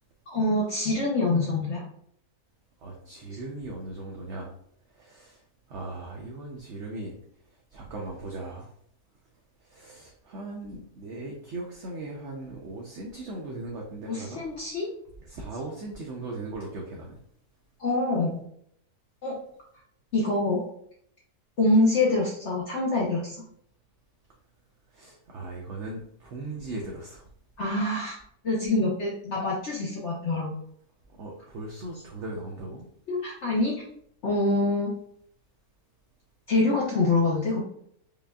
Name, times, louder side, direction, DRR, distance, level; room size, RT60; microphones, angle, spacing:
voice 1, 0.3-1.8 14.1-14.9 17.8-18.4 19.2-19.4 20.1-20.6 21.6-23.4 27.6-28.1 28.4-30.5 33.1-33.8 34.2-34.9 36.5-37.6, left 2 dB, 55° left, -4 dB, 0.9 m, -25 dB
voice 2, 2.8-4.5 4.9-5.4 5.7-7.2 7.7-8.7 9.6-14.4 15.2-17.2 24.9-27.3 31.1-32.9, right 2 dB, 60° right, -1 dB, 0.8 m, -38 dB
5.0 x 2.4 x 2.3 m, 0.67 s
omnidirectional pair, 1.6 m